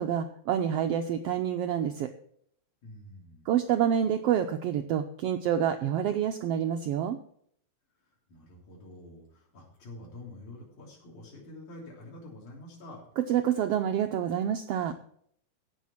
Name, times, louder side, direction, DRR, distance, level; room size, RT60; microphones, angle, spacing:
voice 1, 0.0-2.1 3.5-7.2 13.2-14.9, right 9 dB, 90° right, 6 dB, 1.3 m, -27 dB
voice 2, 2.8-3.5 8.3-13.0, left 1 dB, 70° left, -4 dB, 4.7 m, -47 dB
16.5 x 6.4 x 4.4 m, 0.64 s
omnidirectional pair, 3.5 m